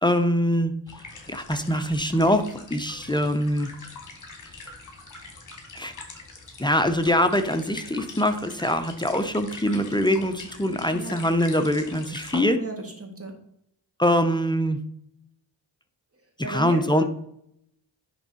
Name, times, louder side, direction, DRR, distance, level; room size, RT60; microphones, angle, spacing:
voice 1, 0.0-0.7 1.3-3.7 5.7-5.9 6.6-12.6 14.0-14.8 16.5-17.0, equal, 10° left, 8 dB, 0.7 m, -23 dB
sound 1, 0.9-12.4, left 3 dB, 40° left, 2.4 m, -43 dB
voice 2, 10.9-11.2 12.5-13.4 16.4-17.0, right 3 dB, 30° right, 3 dB, 2.0 m, -35 dB
10.0 x 3.6 x 4.1 m, 0.73 s
cardioid pair, 65°, 44 cm